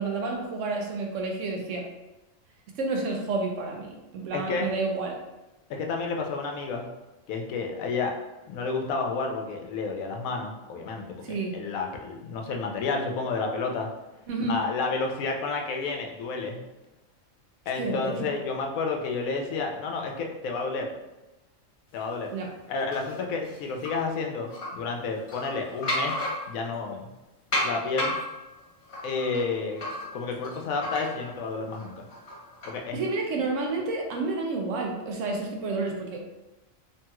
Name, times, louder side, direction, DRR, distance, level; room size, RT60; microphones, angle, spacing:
voice 1, 0.0-1.8 2.8-5.2 11.2-11.6 14.3-14.6 17.8-18.2 22.3-22.5 32.9-36.2, right 3 dB, 70° right, 1 dB, 0.9 m, -30 dB
voice 2, 4.3-4.7 5.7-6.9 7.3-8.1 8.5-13.9 14.5-16.6 17.7-20.9 21.9-22.3 22.7-26.1 26.5-27.1 27.6-28.2 29.0-29.8 30.1-32.0 32.6-33.0, left 4 dB, 90° left, 2 dB, 1.0 m, -30 dB
sound 1, 22.9-23.9 24.5-24.7 25.2-26.8 27.5-31.4 31.8-32.8, left 1 dB, 55° left, 1.3 m, -33 dB
3.1 x 2.9 x 2.2 m, 1.0 s
omnidirectional pair, 1.4 m